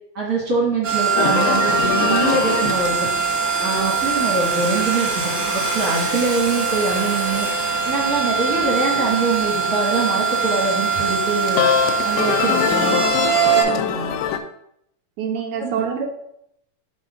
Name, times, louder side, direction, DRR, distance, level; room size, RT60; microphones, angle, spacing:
voice 1, 0.1-3.1 3.6-7.5 7.9-11.6 12.0-13.0 15.6-15.7, right 3 dB, 35° right, -3 dB, 1.7 m, -23 dB
sound 1, 0.8-13.6, right 6 dB, 50° right, 1.7 m, -22 dB
sound 2, 1.2-14.4, left 8 dB, 80° left, 2.2 m, -26 dB
voice 2, 13.7-14.2 15.2-16.1, right 7 dB, 75° right, 3 dB, 1.8 m, -27 dB
5.4 x 4.1 x 5.2 m, 0.75 s
omnidirectional pair, 4.0 m